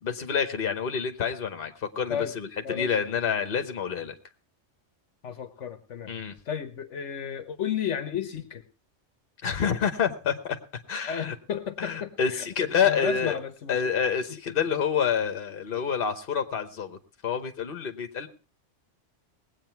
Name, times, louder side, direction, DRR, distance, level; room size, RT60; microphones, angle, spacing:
voice 1, 0.0-4.1 6.1-6.3 9.4-10.6 10.9-11.4 11.8-13.4 13.7-18.3, left 7 dB, 50° left, 8 dB, 1.3 m, -28 dB
voice 2, 5.2-8.6 11.0-12.5 12.8-13.8, left 8 dB, 75° left, 10 dB, 1.2 m, -33 dB
19.5 x 8.6 x 4.5 m, 0.34 s
omnidirectional pair, 1.3 m